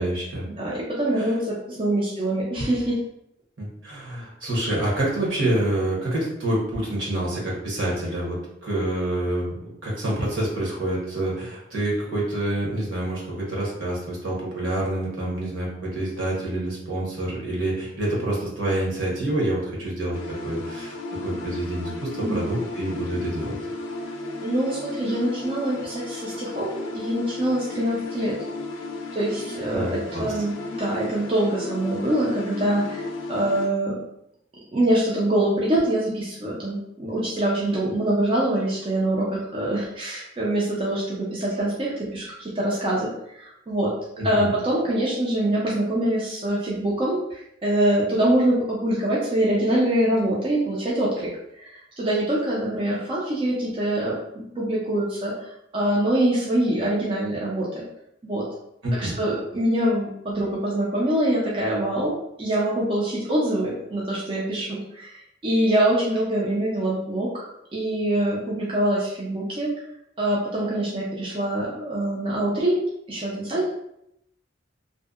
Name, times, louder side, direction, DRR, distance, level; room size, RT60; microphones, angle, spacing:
voice 1, 0.0-0.4 1.2-1.3 3.6-8.4 8.6-23.6 29.7-30.3 44.2-44.5 58.8-59.2, right 1 dB, 70° right, -4 dB, 0.9 m, -27 dB
voice 2, 0.6-3.0 22.2-22.5 24.4-26.7 26.9-28.3 29.1-34.0 34.7-43.9 44.2-57.8 58.2-58.4 59.0-62.1 62.4-65.2 65.4-69.7 70.2-72.8 73.1-73.6, right 1 dB, 25° right, -6 dB, 0.4 m, -24 dB
sound 1, 20.1-33.7, left 3 dB, 85° left, 0.4 m, -34 dB
2.6 x 2.0 x 2.3 m, 0.79 s
head